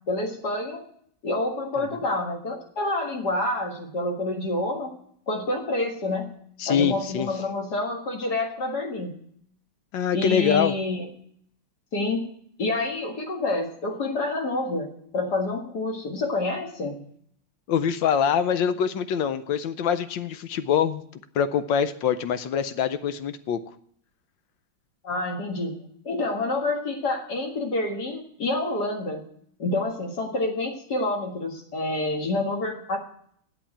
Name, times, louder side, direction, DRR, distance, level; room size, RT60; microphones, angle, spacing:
voice 1, 0.1-0.9 1.2-4.9 5.3-6.4 6.7-9.2 10.1-11.1 11.9-12.3 12.6-17.0 25.0-29.2 29.6-33.0, left 2 dB, 55° left, 3 dB, 2.3 m, -28 dB
voice 2, 6.6-7.3 9.9-10.7 17.7-21.0 21.3-23.6, left 8 dB, 75° left, 12 dB, 1.4 m, -24 dB
11.5 x 8.3 x 8.7 m, 0.65 s
omnidirectional pair, 2.1 m